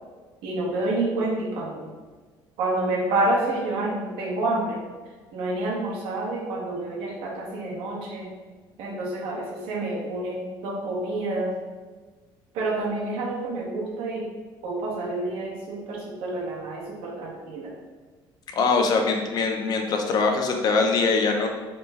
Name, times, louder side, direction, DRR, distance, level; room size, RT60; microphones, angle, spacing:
voice 1, 0.4-1.8 2.6-4.8 5.3-8.3 8.8-11.5 12.5-14.3 14.6-17.7, right 2 dB, 75° right, -4 dB, 0.7 m, -28 dB
voice 2, 18.6-21.5, left 4 dB, 45° left, 3 dB, 0.5 m, -22 dB
3.0 x 2.2 x 3.1 m, 1.4 s
cardioid pair, 125°, 9 cm